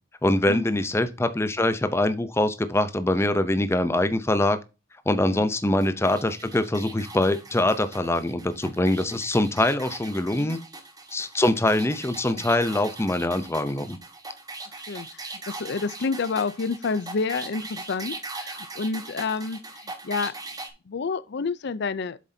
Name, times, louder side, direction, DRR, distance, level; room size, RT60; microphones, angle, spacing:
voice 1, 0.2-4.6 5.1-10.6 11.1-14.0, left 1 dB, 15° left, 0.6 m, -23 dB
sound 1, 5.8-20.7, right 3 dB, 20° right, 1.3 m, -40 dB
voice 2, 14.8-20.3 20.9-22.2, left 4 dB, 60° left, 0.5 m, -29 dB
7.7 x 7.5 x 2.7 m
head